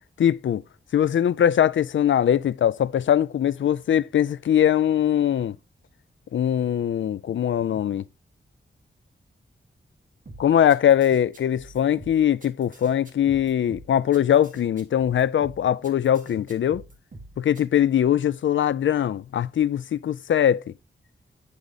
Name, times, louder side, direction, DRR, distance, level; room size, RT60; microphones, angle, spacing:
voice 1, 0.2-0.6 0.9-5.6 6.3-8.0 10.4-16.8 17.4-20.6, left 10 dB, 80° left, 0.4 m, -21 dB
sound 1, 10.3-17.6, right 2 dB, 45° right, 2.0 m, -45 dB
9.4 x 4.9 x 3.9 m
wide cardioid pair, 120°, 19 cm